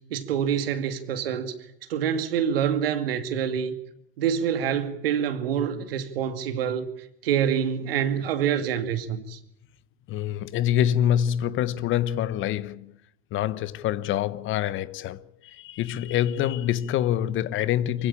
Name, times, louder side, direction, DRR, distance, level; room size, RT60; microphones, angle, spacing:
voice 1, 0.1-1.5 1.9-3.8 4.2-6.9 7.2-9.4, right 8 dB, 75° right, 2.4 m, -26 dB
voice 2, 10.1-12.9 13.3-18.1, left 11 dB, 45° left, 1.1 m, -26 dB
24.0 x 16.0 x 8.8 m
hypercardioid pair, 90°, 29 cm